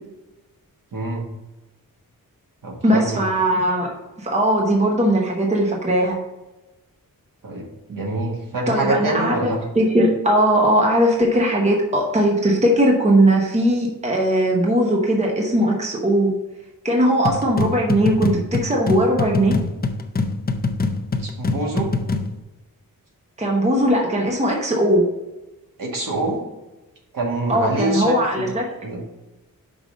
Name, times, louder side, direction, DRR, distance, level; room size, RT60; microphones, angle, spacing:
voice 1, 0.9-1.3 2.6-3.2 7.4-9.6 21.2-21.9 25.8-26.4 27.1-28.5 28.8-29.0, right 2 dB, 65° right, 0 dB, 1.7 m, -25 dB
voice 2, 2.8-3.9 4.2-6.1 8.7-16.3 16.8-19.6 23.4-25.1 27.5-28.8, right 1 dB, 20° right, 0 dB, 0.9 m, -19 dB
sound 1, 17.2-22.4, left 3 dB, 25° left, 0.4 m, -24 dB
5.4 x 4.8 x 5.1 m, 1.0 s
wide cardioid pair, 170°, 36 cm